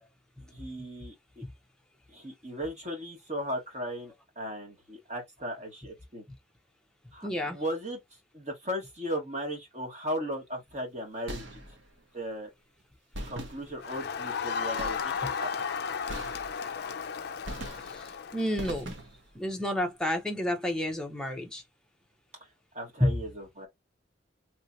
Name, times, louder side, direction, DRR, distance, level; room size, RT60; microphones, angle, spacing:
voice 1, 0.4-1.4 2.1-6.2 7.1-8.0 8.3-11.6 12.1-12.5 13.3-15.5 22.7-23.7, equal, 35° right, 1.5 m, -37 dB
voice 2, 7.2-7.6 15.2-15.3 17.8-18.9 19.3-21.6 23.0-23.1, left 1 dB, 5° left, 0.7 m, -30 dB
sound 1, 11.3-12.0 13.1-14.1 14.8-15.4 16.1-16.9 17.5-18.2 18.6-19.4, right 1 dB, 75° right, 1.1 m, -41 dB
Crowd, 13.8-18.6, left 6 dB, 50° left, 0.4 m, -34 dB
3.2 x 2.7 x 2.7 m
head